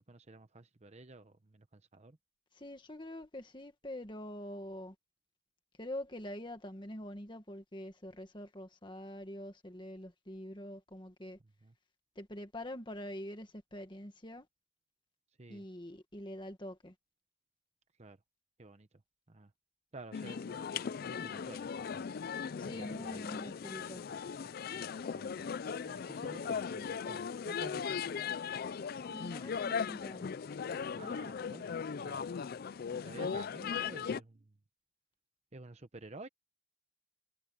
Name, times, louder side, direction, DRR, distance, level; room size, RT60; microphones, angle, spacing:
voice 1, 0.0-2.2 11.6-11.7 15.4-15.6 18.0-18.2 18.6-18.9 19.3-19.5 19.9-22.2 22.7-23.4 24.7-25.4 25.8-28.4 31.0-32.4 33.0-34.5 35.5-36.3, right 2 dB, 35° right, 0.8 m, -52 dB
voice 2, 2.5-4.9 5.8-11.4 12.1-14.5 15.5-16.9 22.6-24.0 29.1-30.3, left 1 dB, 25° left, 1.8 m, -45 dB
sound 1, 20.1-34.2, left 6 dB, 50° left, 0.4 m, -38 dB
head